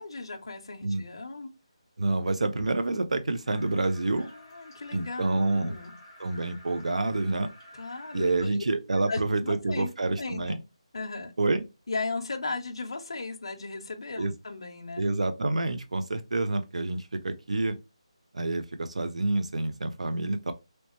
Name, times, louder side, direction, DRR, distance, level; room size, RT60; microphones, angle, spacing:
voice 1, 0.0-1.5 4.2-5.9 7.7-8.6 9.1-9.9 10.2-10.6 10.9-11.3 11.9-15.1, left 3 dB, 50° left, 0.6 m, -36 dB
voice 2, 2.0-4.3 4.9-5.7 6.2-7.5 8.1-10.6 11.4-11.6 14.2-14.3 15.0-17.8 18.3-20.5, right 2 dB, 90° right, 0.5 m, -28 dB
sound 1, 3.4-8.5, left 1 dB, 5° left, 0.8 m, -51 dB
3.2 x 2.9 x 2.9 m
hypercardioid pair, 180°, 3 cm